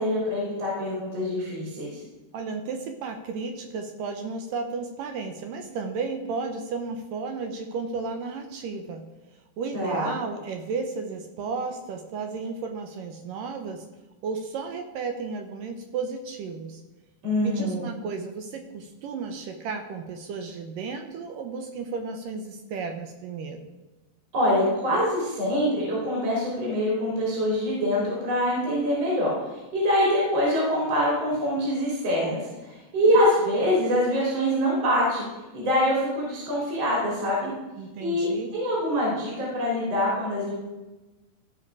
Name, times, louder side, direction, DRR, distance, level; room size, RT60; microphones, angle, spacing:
voice 1, 0.0-2.0 9.7-10.1 17.2-17.8 24.3-35.2 35.5-37.5 38.0-40.5, equal, 40° right, -5 dB, 3.7 m, -24 dB
voice 2, 2.3-9.0 9.6-13.9 14.2-16.8 17.4-23.7 37.8-38.5, right 4 dB, 75° right, 5 dB, 2.2 m, -33 dB
15.0 x 5.6 x 4.7 m, 1.1 s
omnidirectional pair, 4.5 m